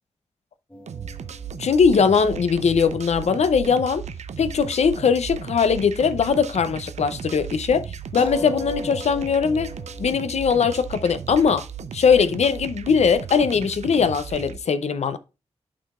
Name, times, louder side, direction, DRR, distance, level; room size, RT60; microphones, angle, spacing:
sound 1, 0.7-4.6 4.8-4.9 8.2-13.4, left 3 dB, 10° left, 1.0 m, -41 dB
sound 2, 0.9-14.6, right 7 dB, 90° right, 0.5 m, -36 dB
voice 1, 1.6-4.0 4.4-9.7 10.0-11.6 11.9-15.2, left 6 dB, 75° left, 0.5 m, -20 dB
11.5 x 4.6 x 2.4 m
wide cardioid pair, 120°, 11 cm